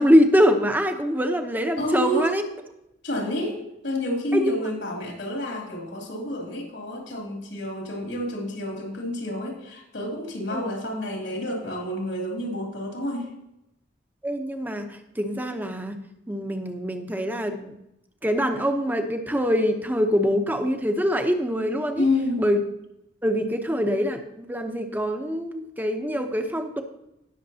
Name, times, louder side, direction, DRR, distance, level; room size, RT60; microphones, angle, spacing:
voice 1, 0.0-2.4 4.3-4.6 10.5-10.7 14.2-16.0 16.3-17.7 18.2-22.1 22.4-22.6 23.2-26.8, equal, 10° right, 5 dB, 0.8 m, -24 dB
voice 2, 1.8-2.3 3.0-13.3 22.0-22.4, left 1 dB, 75° left, 0 dB, 2.9 m, -29 dB
18.5 x 6.5 x 2.8 m, 0.86 s
head